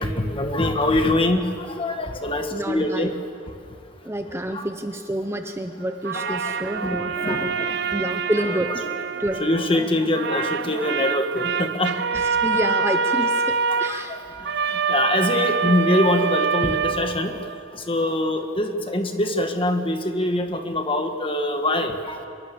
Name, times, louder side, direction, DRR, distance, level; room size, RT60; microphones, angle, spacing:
voice 1, 0.0-3.1 3.5-3.6 4.5-4.6 6.1-7.9 8.4-12.2 13.1-13.2 13.7-22.2, left 1 dB, 25° left, 5 dB, 1.6 m, -24 dB
voice 2, 2.5-3.1 4.0-8.7 9.2-9.4 12.1-14.2 16.5-16.6, right 1 dB, 15° right, 6 dB, 0.9 m, -28 dB
sound 1, 6.0-9.8 10.1-17.7, right 5 dB, 60° right, 0.7 m, -25 dB
25.0 x 23.0 x 7.1 m, 2.5 s
head